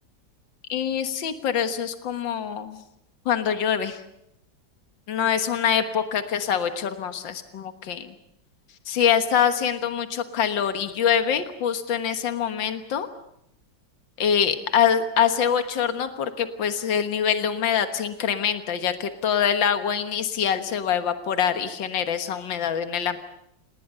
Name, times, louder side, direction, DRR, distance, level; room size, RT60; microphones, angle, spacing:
voice 1, 0.7-2.8 3.3-4.0 5.1-8.1 8.9-13.1 14.2-23.2, left 8 dB, 75° left, 8 dB, 2.1 m, -24 dB
28.5 x 19.5 x 6.8 m, 0.78 s
omnidirectional pair, 2.1 m